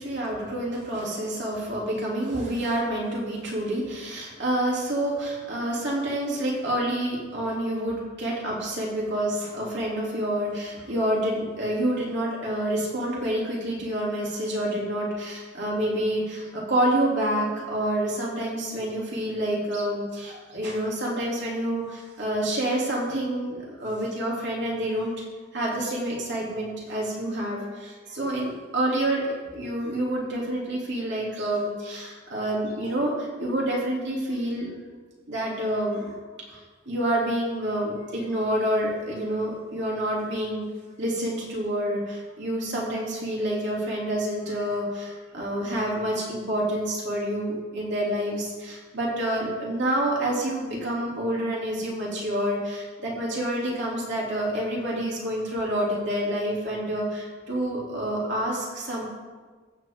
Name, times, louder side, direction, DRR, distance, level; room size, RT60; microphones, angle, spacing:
voice 1, 0.0-25.1 25.5-34.7 35.3-36.1 36.5-40.6 41.0-59.0, right 1 dB, 60° right, -4 dB, 3.1 m, -28 dB
14.5 x 7.1 x 3.8 m, 1.4 s
head